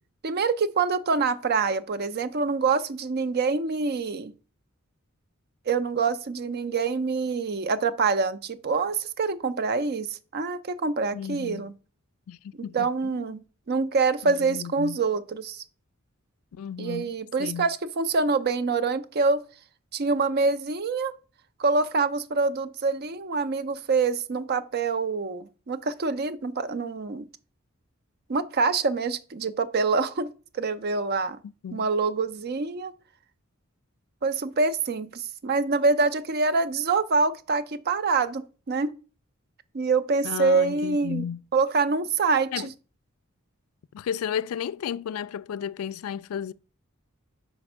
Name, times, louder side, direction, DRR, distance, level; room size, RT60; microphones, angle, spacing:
voice 1, 0.2-4.3 5.7-11.7 12.7-13.4 13.7-15.6 16.8-19.4 19.9-21.1 21.6-27.3 28.3-31.4 31.7-32.9 34.2-38.9 39.7-42.7, right 4 dB, 50° right, 0.5 m, -25 dB
voice 2, 11.1-11.7 12.3-13.3 14.2-15.0 16.5-17.1 17.4-17.7 31.4-31.9 40.2-41.4 42.5-42.7 43.9-46.5, left 8 dB, 85° left, 0.3 m, -33 dB
5.2 x 4.3 x 6.0 m
head